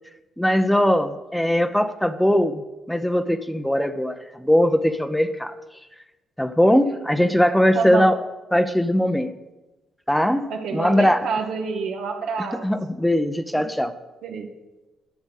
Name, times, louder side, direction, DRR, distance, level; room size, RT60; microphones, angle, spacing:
voice 1, 0.4-2.6 2.9-5.5 6.4-8.2 8.5-9.3 10.1-11.3 12.6-13.9, equal, 5° left, 10 dB, 0.8 m, -20 dB
voice 2, 7.7-8.1 10.5-12.7 13.6-13.7 14.2-14.5, right 5 dB, 75° right, 4 dB, 2.1 m, -28 dB
12.0 x 7.0 x 8.4 m, 1.1 s
cardioid pair, 90°, 0 cm